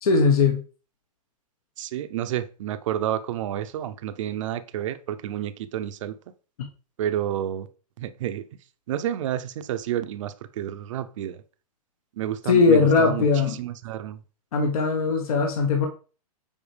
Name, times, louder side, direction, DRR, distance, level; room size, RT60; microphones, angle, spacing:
voice 1, 0.0-0.6 12.5-13.6 14.5-15.9, left 4 dB, 65° left, 1.2 m, -19 dB
voice 2, 1.8-6.2 7.0-7.7 8.0-8.4 8.9-11.4 12.2-13.3 13.6-14.2, right 11 dB, 50° right, 0.6 m, -30 dB
7.2 x 4.6 x 3.3 m
hypercardioid pair, 150°, 20 cm